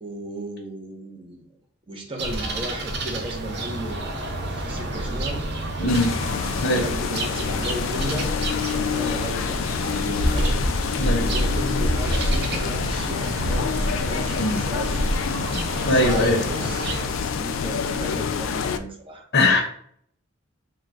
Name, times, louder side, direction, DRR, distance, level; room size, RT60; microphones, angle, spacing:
voice 1, 0.0-1.4 1.9-4.3 4.6-5.4 6.5-15.0 15.9-19.3, right 1 dB, 25° right, 2 dB, 0.7 m, -35 dB
sound 1, 2.2-17.1, right 1 dB, 60° right, 0.7 m, -28 dB
voice 2, 5.8-6.1 6.6-6.8 11.0-11.3 14.4-14.6 15.9-16.4 19.3-19.6, left 1 dB, 60° left, 0 dB, 0.7 m, -20 dB
Amsterdam rainy street, 5.9-18.8, left 6 dB, 80° left, 0.3 m, -27 dB
3.8 x 2.2 x 4.5 m, 0.63 s
head